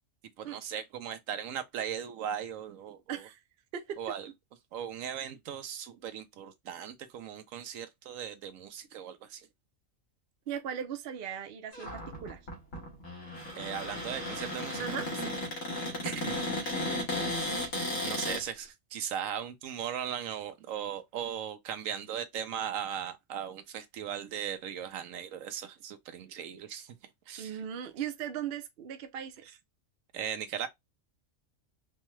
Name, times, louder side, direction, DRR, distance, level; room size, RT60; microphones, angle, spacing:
voice 1, 0.4-3.3 4.0-4.3 4.7-9.5 13.5-15.0 16.0-16.7 18.0-27.0 27.3-27.6 30.1-30.7, right 9 dB, 80° right, 1.1 m, -38 dB
voice 2, 3.1-3.4 3.7-4.0 10.5-12.4 14.8-15.4 27.4-29.4, right 9 dB, 55° right, 0.7 m, -38 dB
Cupboard open or close, 11.7-18.4, left 1 dB, 75° left, 1.7 m, -35 dB
4.5 x 2.2 x 3.0 m
omnidirectional pair, 1.4 m